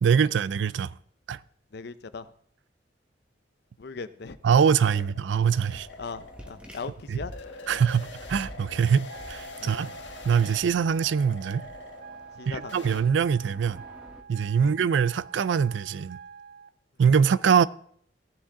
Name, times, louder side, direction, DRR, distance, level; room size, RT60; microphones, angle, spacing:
voice 1, 0.0-0.9 1.3-1.4 4.4-5.9 7.1-7.2 7.7-9.9 10.2-11.7 12.5-13.8 14.3-16.2 17.0-17.7, right 7 dB, 75° right, 0.4 m, -23 dB
voice 2, 1.7-2.3 3.8-4.4 4.9-5.1 6.0-7.3 9.6-9.9 12.4-13.0 14.6-14.8, left 4 dB, 60° left, 0.6 m, -39 dB
sound 1, 4.0-13.0, left 3 dB, 80° left, 1.5 m, -45 dB
sound 2, 5.7-14.2, equal, 5° right, 1.5 m, -48 dB
sound 3, 9.1-16.7, right 6 dB, 55° right, 0.7 m, -46 dB
16.0 x 7.2 x 3.7 m
head